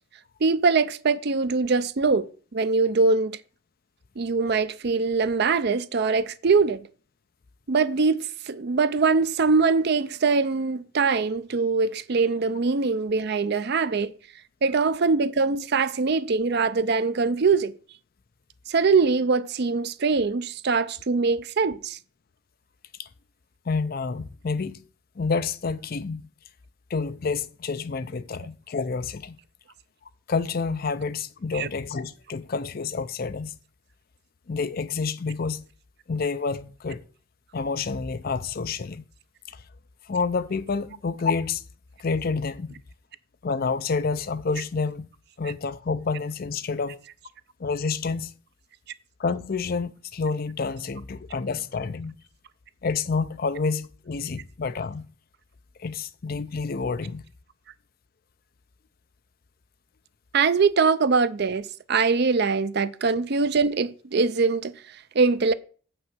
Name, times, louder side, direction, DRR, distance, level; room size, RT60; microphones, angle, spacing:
voice 1, 0.4-3.4 4.2-6.9 7.7-14.1 14.6-17.8 18.7-22.0 31.5-31.7 60.3-65.5, right 4 dB, 50° right, 0.5 m, -23 dB
voice 2, 23.7-24.8 25.2-26.3 26.9-29.4 30.3-33.6 34.5-35.7 36.1-37.0 37.5-39.0 39.5-39.6 40.1-41.6 42.0-42.8 43.4-45.1 45.4-47.0 47.6-48.3 49.2-52.1 52.8-55.1 55.8-57.2, left 4 dB, 45° left, 0.4 m, -28 dB
7.4 x 6.0 x 6.0 m
head